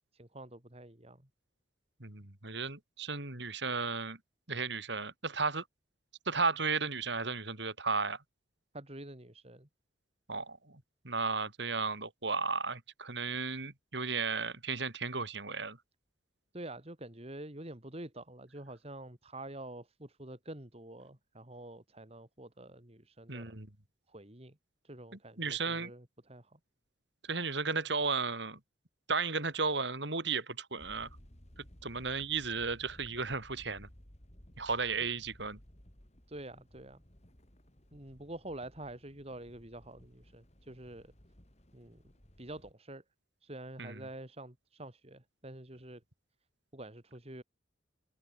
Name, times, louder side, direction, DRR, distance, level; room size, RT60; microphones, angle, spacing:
voice 1, 0.1-1.3 8.7-9.7 16.5-23.6 24.1-24.6 24.8-26.6 36.3-37.0 37.9-41.1 41.7-42.0 42.4-43.0 43.4-46.0 46.7-47.4, right 1 dB, 30° right, 2.9 m, -47 dB
voice 2, 2.0-4.2 4.5-5.6 6.3-8.2 10.3-15.8 23.3-23.7 25.4-25.9 27.3-28.6 29.1-31.1 31.8-33.9 34.6-35.6 43.8-44.0, right 4 dB, 65° right, 3.4 m, -34 dB
sound 1, 30.8-42.7, equal, 35° left, 3.7 m, -58 dB
head